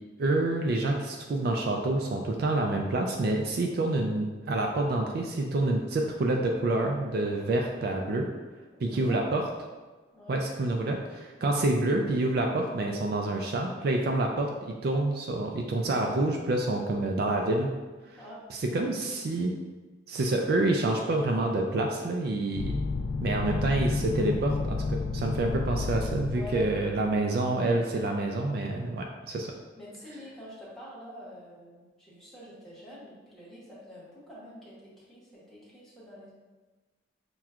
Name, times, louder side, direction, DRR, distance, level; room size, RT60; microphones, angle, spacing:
voice 1, 0.2-8.3 8.8-9.5 10.3-17.7 18.1-18.2 18.5-19.5 20.1-22.8 23.2-29.5, right 2 dB, 50° right, 1 dB, 0.3 m, -27 dB
voice 2, 8.8-9.2 10.1-10.4 18.2-18.4 26.3-26.7 29.8-36.3, equal, ahead, -10 dB, 1.0 m, -46 dB
sound 1, 22.6-27.1, left 3 dB, 75° left, 0.3 m, -31 dB
5.8 x 2.3 x 2.3 m, 1.3 s
head